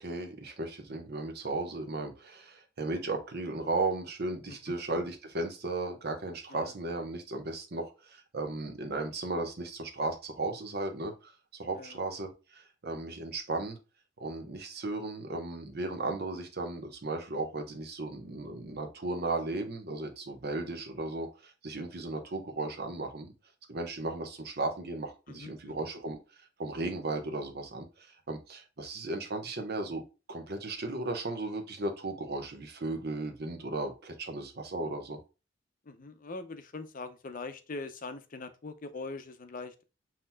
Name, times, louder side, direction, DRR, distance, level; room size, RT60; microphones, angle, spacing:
voice 1, 0.0-13.8 14.2-23.3 23.7-26.2 26.6-30.0 30.3-35.2, right 2 dB, 55° right, 0.9 m, -35 dB
voice 2, 25.3-25.9 35.8-39.8, left 3 dB, 45° left, 0.6 m, -42 dB
7.4 x 2.9 x 2.2 m
head